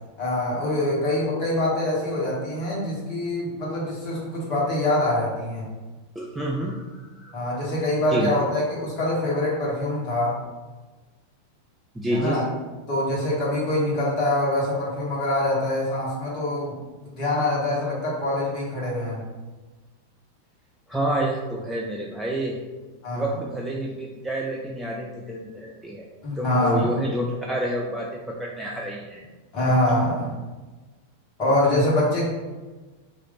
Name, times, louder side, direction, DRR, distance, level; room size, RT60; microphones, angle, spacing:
voice 1, 0.2-5.7 7.3-10.4 12.1-12.4 12.9-16.8 17.1-19.2 23.0-23.3 26.2-26.9 29.5-30.3 31.4-32.3, left 1 dB, 40° left, -5 dB, 1.5 m, -24 dB
voice 2, 6.2-7.6 8.1-8.4 11.9-12.4 20.9-22.6 23.1-26.1 26.4-29.2, equal, 5° right, -2 dB, 0.4 m, -29 dB
3.0 x 2.7 x 3.9 m, 1.3 s
figure-of-eight pair, 90°, 0 cm